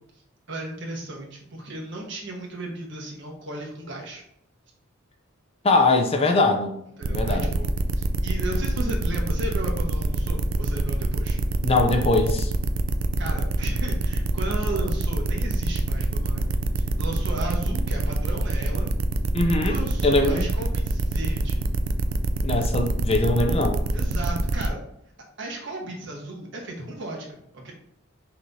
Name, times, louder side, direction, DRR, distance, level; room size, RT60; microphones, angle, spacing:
voice 1, 0.5-4.2 7.0-7.7 8.0-11.4 13.2-16.5 16.8-18.9 19.6-21.6 23.9-24.8 25.4-27.3 27.5-27.7, right 1 dB, 60° right, -1 dB, 1.3 m, -35 dB
voice 2, 5.6-6.8 7.1-7.6 11.6-12.5 19.3-20.5 22.4-23.8, left 2 dB, 30° left, 4 dB, 0.5 m, -22 dB
sound 1, 7.0-24.7, right 2 dB, 80° right, 0.4 m, -25 dB
5.8 x 3.2 x 2.7 m, 0.74 s
head